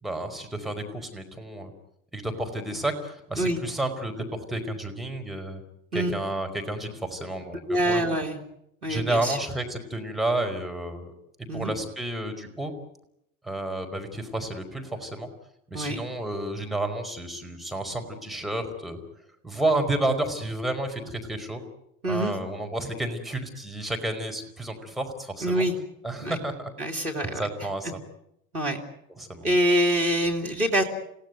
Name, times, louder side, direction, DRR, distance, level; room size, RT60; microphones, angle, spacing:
voice 1, 0.0-1.7 2.1-5.6 5.9-7.6 7.9-8.0 8.9-11.1 11.5-12.7 13.4-15.3 15.7-19.0 19.4-21.6 22.0-25.6 26.0-26.7 27.3-28.0 29.2-29.5, right 1 dB, ahead, 3 dB, 4.9 m, -31 dB
voice 2, 7.7-8.4 8.8-9.4 11.5-11.7 15.7-16.0 22.0-22.3 25.4-25.7 26.2-26.4 26.8-27.5 28.5-28.8 29.4-30.8, equal, 90° right, 0 dB, 2.6 m, -25 dB
29.0 x 17.0 x 9.4 m, 0.78 s
figure-of-eight pair, 70°, 43 cm